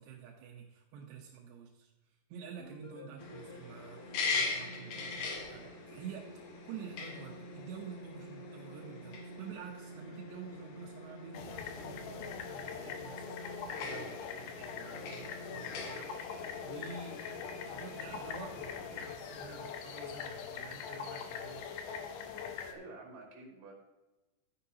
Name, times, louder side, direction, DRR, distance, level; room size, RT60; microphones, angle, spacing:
voice 1, 0.0-1.9 2.3-17.2 17.7-21.7, right 6 dB, 85° right, 0 dB, 3.2 m, -49 dB
sound 1, 2.6-5.5, left 3 dB, 45° left, 1.9 m, -55 dB
sound 2, 3.2-19.1, left 3 dB, 65° left, 2.6 m, -42 dB
sound 3, 11.3-22.7, left 7 dB, 80° left, 3.0 m, -42 dB
voice 2, 21.5-22.1 22.7-23.7, right 2 dB, 55° right, -1 dB, 4.0 m, -51 dB
13.0 x 9.5 x 2.8 m, 1.1 s
omnidirectional pair, 4.9 m